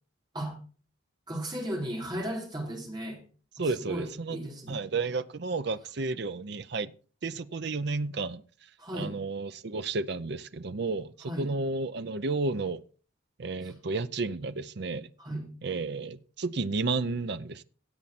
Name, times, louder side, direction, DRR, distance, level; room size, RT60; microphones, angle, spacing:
voice 1, 1.3-3.2 3.6-4.8 8.8-9.2 11.2-11.5 13.6-13.7 15.2-15.5, equal, 20° right, 3.6 m, -36 dB
voice 2, 3.6-4.4 4.7-6.9 7.2-8.4 8.9-12.8 13.4-15.1 15.6-17.6, right 3 dB, 55° right, 0.6 m, -32 dB
17.0 x 7.4 x 4.2 m
head